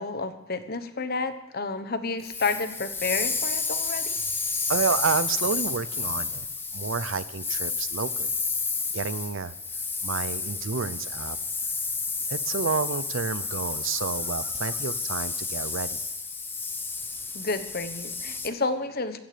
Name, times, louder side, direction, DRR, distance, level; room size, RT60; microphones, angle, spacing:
voice 1, 0.0-4.2 17.3-19.2, left 3 dB, 45° left, 10 dB, 1.1 m, -30 dB
sound 1, 2.2-18.5, left 4 dB, 10° left, 0.8 m, -31 dB
voice 2, 4.7-6.5 6.7-8.4 8.9-9.5 10.0-11.4 12.3-16.0, right 5 dB, 60° right, 16 dB, 0.6 m, -30 dB
15.5 x 15.5 x 5.1 m, 0.92 s
head